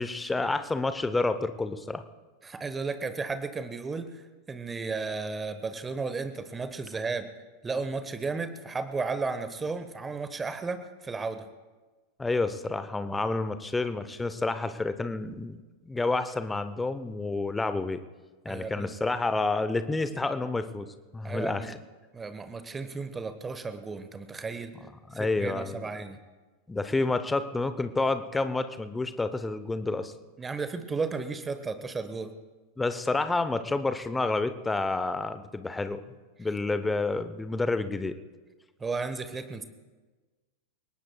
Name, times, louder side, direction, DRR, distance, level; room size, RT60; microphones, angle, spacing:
voice 1, 0.0-2.0 12.2-15.6 15.8-18.0 18.4-20.9 21.1-21.7 25.1-25.9 26.7-30.1 32.8-36.0 36.4-38.1, left 3 dB, 10° left, 11 dB, 0.8 m, -29 dB
voice 2, 2.4-7.3 7.6-11.5 18.5-18.9 21.2-21.8 22.1-24.7 25.1-26.2 30.4-32.3 38.8-39.6, right 4 dB, 15° right, 10 dB, 1.2 m, -34 dB
29.5 x 18.0 x 2.3 m, 1.3 s
figure-of-eight pair, 90°, 0 cm